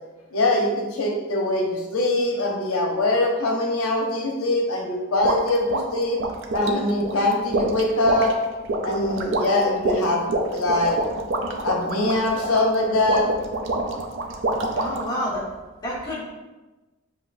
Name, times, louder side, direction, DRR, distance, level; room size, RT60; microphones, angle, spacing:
voice 1, 0.3-6.2 6.5-8.3 8.8-10.2 10.5-11.0 11.6-13.3, left 2 dB, 90° left, 0 dB, 0.8 m, -22 dB
sound 1, 5.2-15.1, right 2 dB, 60° right, 0.5 m, -27 dB
voice 2, 14.7-15.4 15.8-16.2, left 1 dB, 20° left, -7 dB, 1.3 m, -28 dB
7.2 x 2.9 x 2.5 m, 1.1 s
head